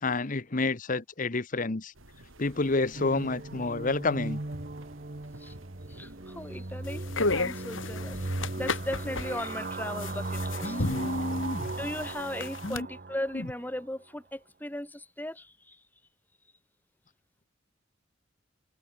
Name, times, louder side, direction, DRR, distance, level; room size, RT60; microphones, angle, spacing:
voice 1, 0.0-1.9 2.4-4.4 10.6-11.7 12.6-12.9 13.3-13.5, left 3 dB, 40° left, 1.0 m, -29 dB
sound 1, 1.9-12.4, right 1 dB, 90° right, 5.5 m, -53 dB
sound 2, 2.9-13.7, right 2 dB, 45° right, 1.2 m, -37 dB
voice 2, 5.9-7.0 7.3-8.3 8.6-11.0 11.7-15.8, left 1 dB, 10° left, 2.7 m, -37 dB
sound 3, 6.9-12.8, left 3 dB, 75° left, 3.5 m, -34 dB
head